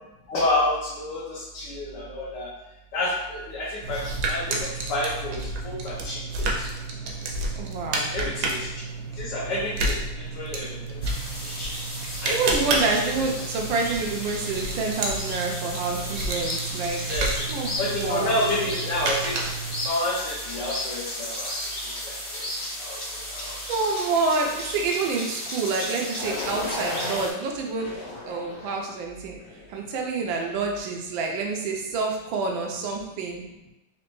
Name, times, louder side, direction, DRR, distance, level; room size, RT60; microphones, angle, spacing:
voice 1, 0.3-2.5 2.9-6.7 8.1-8.7 9.2-11.0 11.4-11.7 12.2-13.1 17.1-17.4 17.8-19.3 19.8-21.5 22.0-22.4 22.8-23.6 26.0-26.1, left 1 dB, 70° left, -7 dB, 1.4 m, -29 dB
sound 1, 3.8-19.9, right 2 dB, 65° right, 1.1 m, -30 dB
voice 2, 7.6-8.1 12.3-17.0 17.5-17.7 18.0-18.4 23.7-27.9 28.2-29.4 29.7-33.5, right 4 dB, 90° right, 1 dB, 1.4 m, -27 dB
sound 2, 11.0-27.3, left 1 dB, 50° left, 1.1 m, -35 dB
sound 3, 26.2-27.2 27.8-28.8 29.4-29.8, left 2 dB, 90° left, 1.5 m, -34 dB
4.2 x 2.9 x 3.0 m, 0.95 s
omnidirectional pair, 2.0 m